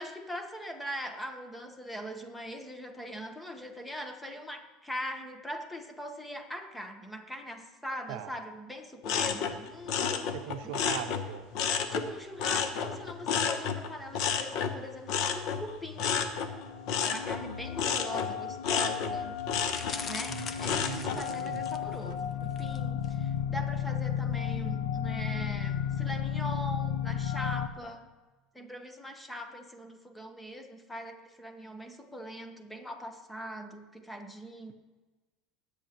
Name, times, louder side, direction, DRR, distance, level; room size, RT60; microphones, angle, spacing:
voice 1, 0.0-10.3 10.6-10.8 11.9-16.2 17.0-19.4 20.1-28.1 28.5-34.7, equal, 5° left, 6 dB, 1.0 m, -41 dB
sound 1, 9.0-12.1 12.4-21.2 21.7-22.1, left 7 dB, 60° left, 0.9 m, -31 dB
voice 2, 10.3-11.5 20.3-21.7, right 11 dB, 75° right, 8 dB, 0.6 m, -41 dB
sound 2, 16.4-27.7, left 9 dB, 90° left, 0.8 m, -34 dB
sound 3, 19.7-22.0 22.5-22.8 23.0-23.1, left 5 dB, 30° left, 0.7 m, -41 dB
20.5 x 8.5 x 3.0 m, 1.2 s
cardioid pair, 140°, 0 cm